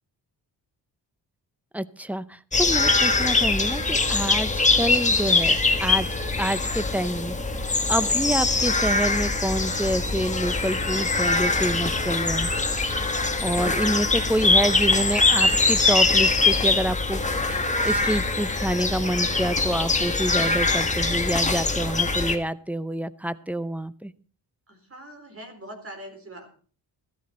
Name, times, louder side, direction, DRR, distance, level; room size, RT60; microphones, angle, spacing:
voice 1, 1.7-6.1 6.4-7.4 7.9-12.5 13.4-24.1, right 1 dB, 5° right, 15 dB, 0.6 m, -27 dB
sound 1, 2.5-22.4, left 3 dB, 15° left, 1.5 m, -23 dB
voice 2, 24.7-26.5, right 1 dB, 35° right, 6 dB, 3.9 m, -43 dB
14.5 x 13.5 x 4.2 m, 0.40 s
wide cardioid pair, 115°, 42 cm